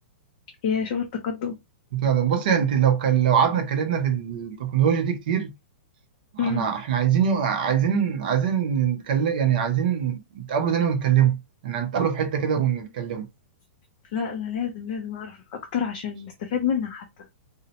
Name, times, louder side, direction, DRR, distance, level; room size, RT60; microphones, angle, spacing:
voice 1, 0.6-1.6 6.4-6.7 14.1-17.1, left 7 dB, 30° left, 0.4 m, -28 dB
voice 2, 1.9-5.5 6.4-13.3, right 8 dB, 45° right, 0.6 m, -23 dB
2.7 x 2.0 x 2.7 m
hypercardioid pair, 170°, 7 cm